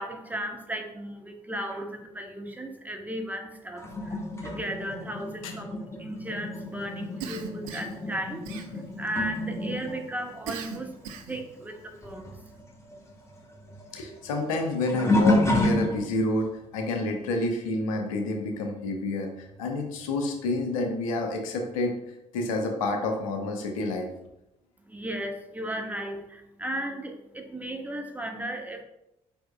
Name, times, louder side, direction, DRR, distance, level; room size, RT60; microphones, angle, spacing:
voice 1, 0.0-12.6 24.8-28.8, right 1 dB, 10° right, 4 dB, 0.8 m, -36 dB
sound 1, 3.8-11.8 12.0-16.4 17.0-17.3 19.5-19.6 20.5-20.6, left 1 dB, 15° left, 1.0 m, -30 dB
Cough, 7.2-8.0 8.4-9.1 10.5-11.5, right 6 dB, 75° right, 0.4 m, -39 dB
voice 2, 13.9-22.0 22.3-24.1, left 2 dB, 75° left, 3 dB, 0.6 m, -29 dB
4.9 x 4.4 x 2.2 m, 0.88 s
figure-of-eight pair, 40°, 17 cm